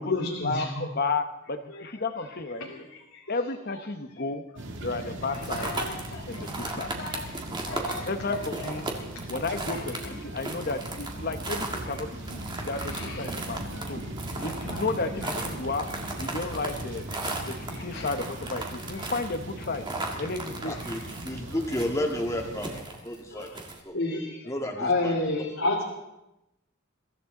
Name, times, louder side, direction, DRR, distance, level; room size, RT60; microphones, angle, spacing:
voice 1, 0.0-0.9 1.7-1.9 2.6-3.2 5.6-6.6 7.0-7.3 7.6-8.7 9.7-9.8 12.6-13.3 13.7-14.1 14.4-14.8 15.2-15.3 17.1-18.1 20.7-20.8 23.3-23.5 23.9-25.8, left 2 dB, 80° left, -3 dB, 2.4 m, -33 dB
voice 2, 0.9-2.7 3.3-4.4 4.8-5.7 6.3-6.9 8.1-8.9 9.3-12.4 12.7-14.0 14.4-15.9 16.2-17.1 17.4-19.9 20.2-20.8, left 3 dB, 50° left, 8 dB, 1.3 m, -32 dB
sound 1, 4.5-22.8, right 1 dB, 65° right, 2.0 m, -39 dB
sound 2, 5.3-23.8, right 2 dB, 20° right, 2.1 m, -37 dB
voice 3, 20.6-21.0 21.2-22.8 23.0-23.5 23.8-24.0 24.4-25.1, left 1 dB, 15° left, 1 dB, 2.2 m, -31 dB
23.0 x 15.0 x 4.0 m, 0.92 s
head